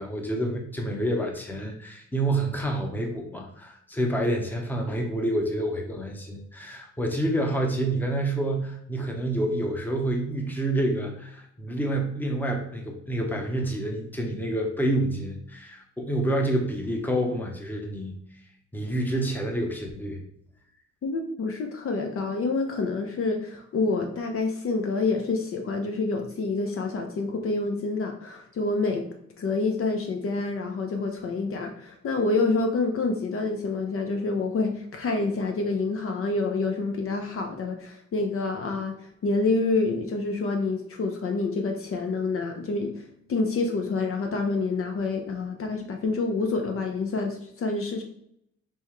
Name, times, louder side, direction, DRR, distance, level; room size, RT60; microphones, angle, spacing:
voice 1, 0.0-18.1 18.7-20.2, right 1 dB, 5° left, 2 dB, 0.8 m, -28 dB
voice 2, 21.0-29.0 29.4-38.9 39.2-48.0, left 3 dB, 45° left, 3 dB, 0.7 m, -27 dB
5.4 x 2.2 x 3.1 m, 0.72 s
cardioid pair, 90°, 30 cm